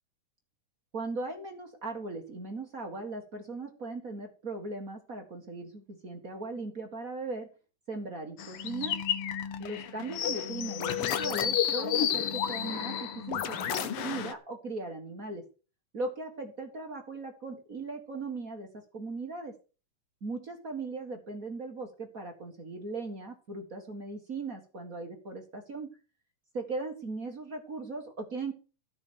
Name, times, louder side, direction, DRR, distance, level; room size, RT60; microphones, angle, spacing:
voice 1, 0.9-7.5 7.9-9.0 9.6-15.4 15.9-19.6 20.2-25.9 26.5-28.5, right 3 dB, 35° right, 3 dB, 1.5 m, -38 dB
sound 1, 8.4-14.3, left 9 dB, 65° left, 1.5 m, -31 dB
13.5 x 6.5 x 6.4 m, 0.35 s
omnidirectional pair, 3.6 m